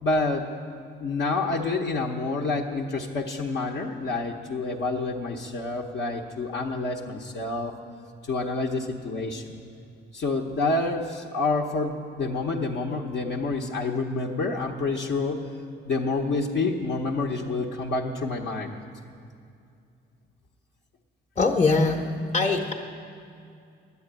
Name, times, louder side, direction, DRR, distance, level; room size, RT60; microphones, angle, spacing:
voice 1, 0.0-0.5 1.0-7.8 8.2-9.6 10.1-15.5 15.9-18.8, left 3 dB, 60° left, -3 dB, 0.9 m, -28 dB
voice 2, 21.4-22.0 22.3-22.7, left 3 dB, 30° left, 0 dB, 0.9 m, -21 dB
10.0 x 8.3 x 8.8 m, 2.4 s
cardioid pair, 90°, 20 cm